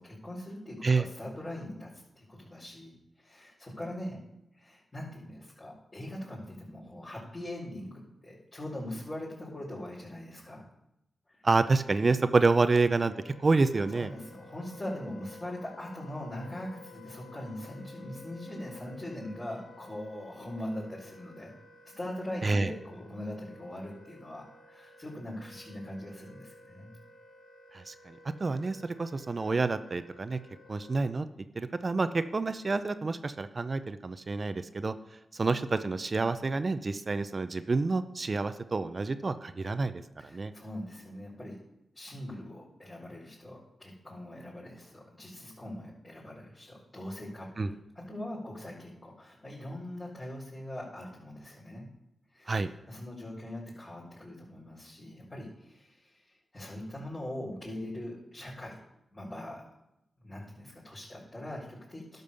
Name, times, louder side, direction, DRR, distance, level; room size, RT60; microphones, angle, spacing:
voice 1, 0.0-4.2 4.5-10.6 11.3-11.4 13.9-21.5 22.0-26.9 40.2-41.6 41.9-51.9 52.3-58.8 59.1-59.6 60.2-62.2, left 1 dB, 30° left, -8 dB, 4.4 m, -41 dB
voice 2, 11.4-14.1 22.4-22.7 27.7-30.4 30.7-31.3 31.5-34.9 35.3-40.5 47.6-47.7 52.5-52.7, right 3 dB, 45° right, 11 dB, 0.6 m, -28 dB
Wind instrument woodwind instrument, 13.0-31.2, left 2 dB, 85° left, 2.1 m, -53 dB
11.5 x 5.4 x 6.8 m, 0.85 s
cardioid pair, 50°, 0 cm